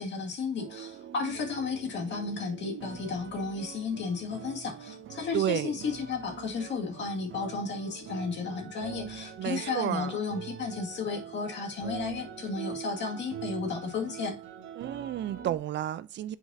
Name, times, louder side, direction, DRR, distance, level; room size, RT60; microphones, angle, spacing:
voice 1, 0.0-14.4, left 4 dB, 65° left, 2.0 m, -33 dB
sound 1, 0.6-15.6, right 9 dB, 80° right, 1.0 m, -44 dB
voice 2, 5.3-5.8 9.4-10.2 14.8-16.4, right 12 dB, 65° right, 0.5 m, -31 dB
7.7 x 4.7 x 2.7 m
cardioid pair, 90°, 20 cm